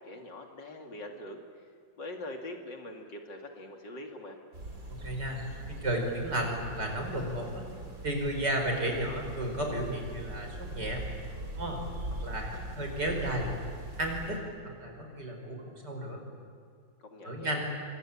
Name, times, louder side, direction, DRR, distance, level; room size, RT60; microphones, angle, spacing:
voice 1, 0.0-1.4 2.0-4.4 17.0-17.6, left 1 dB, 65° left, 3 dB, 3.2 m, -43 dB
sound 1, 4.5-14.4, right 1 dB, 45° right, 4.7 m, -41 dB
voice 2, 4.9-5.4 5.7-7.6 8.0-11.0 11.6-11.8 12.2-13.5 14.0-16.2 17.2-17.6, right 1 dB, 60° right, 3 dB, 5.7 m, -33 dB
27.0 x 24.5 x 8.6 m, 2.4 s
omnidirectional pair, 2.1 m